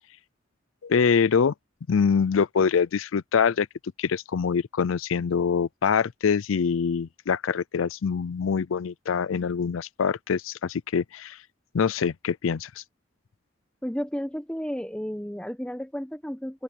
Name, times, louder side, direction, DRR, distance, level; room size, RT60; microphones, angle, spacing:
voice 1, 0.8-1.5 1.9-3.7 4.0-11.4 11.7-12.8, left 6 dB, 80° left, 0.5 m, -24 dB
voice 2, 13.8-16.6, equal, 5° left, 1.0 m, -32 dB
head